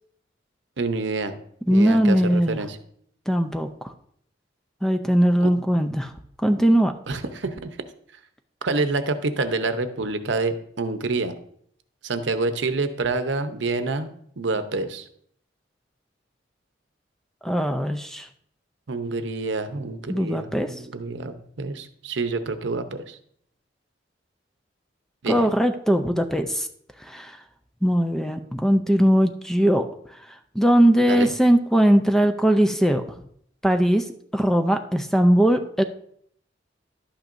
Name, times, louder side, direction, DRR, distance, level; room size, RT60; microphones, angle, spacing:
voice 1, 0.8-1.4 1.7-2.8 5.4-5.5 7.1-7.7 8.6-11.3 12.0-15.1 18.9-23.2 25.2-25.5 31.1-31.3, right 3 dB, 75° right, 9 dB, 0.8 m, -27 dB
voice 2, 1.7-2.6 3.3-3.7 4.8-6.1 6.4-6.9 17.4-18.3 20.1-20.7 25.2-26.7 27.1-27.4 27.8-29.9 30.6-33.0 33.6-34.0 34.3-35.8, equal, ahead, 7 dB, 0.5 m, -20 dB
11.5 x 9.0 x 2.6 m, 0.66 s
head